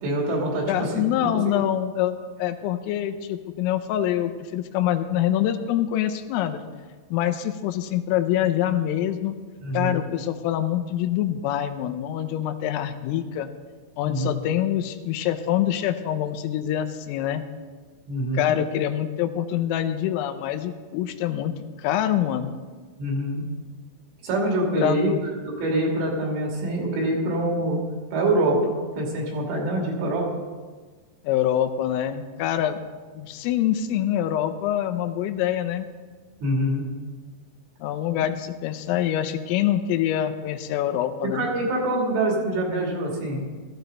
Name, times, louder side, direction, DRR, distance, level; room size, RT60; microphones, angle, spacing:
voice 1, 0.0-0.9 1.2-1.3 9.6-10.0 14.0-14.3 18.1-18.5 23.0-23.4 24.2-25.1 25.4-27.8 28.1-30.3 36.4-36.9 41.2-43.5, right 1 dB, 70° right, -2 dB, 5.3 m, -25 dB
voice 2, 0.7-6.6 7.1-9.4 9.7-13.5 14.0-17.4 18.3-21.5 21.8-22.5 24.8-25.2 31.3-32.8 33.2-35.9 37.8-41.5, left 11 dB, 85° left, 8 dB, 3.4 m, -25 dB
15.5 x 14.5 x 4.0 m, 1.4 s
omnidirectional pair, 5.9 m